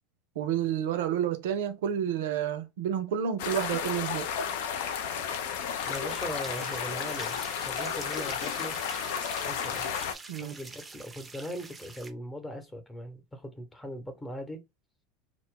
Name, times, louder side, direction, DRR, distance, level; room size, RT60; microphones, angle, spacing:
voice 1, 0.4-4.3 10.3-10.5, right 9 dB, 75° right, 0.4 m, -30 dB
sound 1, 3.4-10.2, left 7 dB, 70° left, 0.4 m, -33 dB
sound 2, 5.8-12.1, right 3 dB, 20° right, 0.5 m, -45 dB
voice 2, 5.9-7.4 7.7-8.7 9.5-9.9 10.4-14.6, equal, 15° left, 0.9 m, -39 dB
2.2 x 2.0 x 3.7 m
hypercardioid pair, 85°, 0 cm